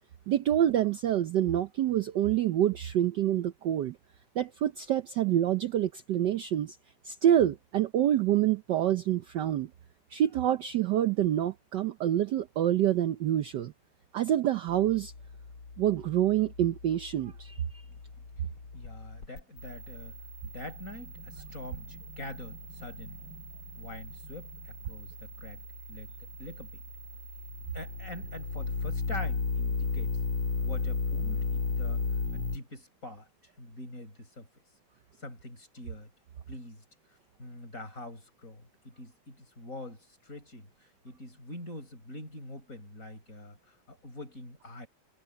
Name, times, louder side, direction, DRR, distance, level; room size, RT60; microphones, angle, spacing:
voice 1, 0.3-4.0 4.3-6.8 7.0-9.7 10.1-13.7 14.1-15.1 15.8-17.6, right 11 dB, 65° right, 1.2 m, -27 dB
sound 1, 14.7-32.6, left 4 dB, 65° left, 3.8 m, -36 dB
voice 2, 18.7-20.2 20.4-23.3 23.8-25.6 25.9-26.8 27.7-30.2 30.6-32.0 32.3-33.3 33.6-34.5 35.2-36.1 36.5-36.8 37.4-44.9, left 1 dB, 35° left, 7.7 m, -44 dB
omnidirectional pair, 2.4 m